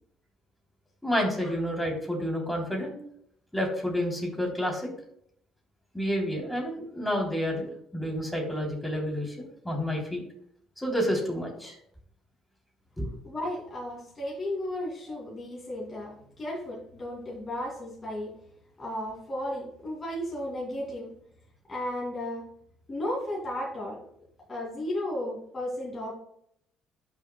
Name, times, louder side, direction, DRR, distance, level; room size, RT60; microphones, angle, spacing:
voice 1, 1.0-3.0 3.5-4.9 5.9-10.2 10.8-11.8 13.0-13.1, equal, 5° left, -1 dB, 3.3 m, -29 dB
voice 2, 13.2-18.3 18.8-21.1 21.7-22.4 22.9-24.0 24.5-26.2, left 1 dB, 25° left, -4 dB, 2.5 m, -34 dB
11.5 x 6.5 x 2.3 m, 0.69 s
cardioid pair, 105°, 0 cm